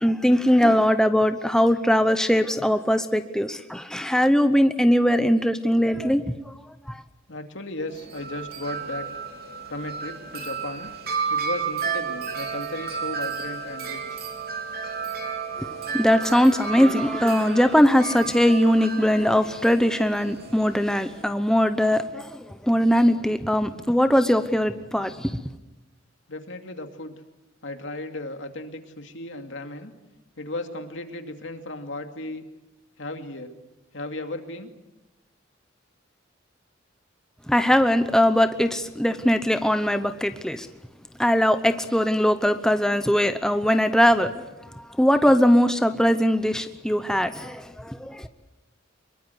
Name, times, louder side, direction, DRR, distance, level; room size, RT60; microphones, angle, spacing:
voice 1, 0.0-6.4 6.9-7.0 15.6-25.3 37.5-40.7 41.2-44.3 45.0-48.3, equal, 5° left, 9 dB, 0.9 m, -21 dB
voice 2, 7.3-9.1 9.7-10.9 11.3-14.2 26.3-27.2 27.6-29.9 30.4-32.4 33.0-33.5 33.9-34.7, left 2 dB, 70° left, 6 dB, 2.5 m, -35 dB
Wind chime, 7.9-21.2, right 6 dB, 55° right, 3.8 m, -32 dB
24.5 x 22.5 x 8.1 m, 1.0 s
head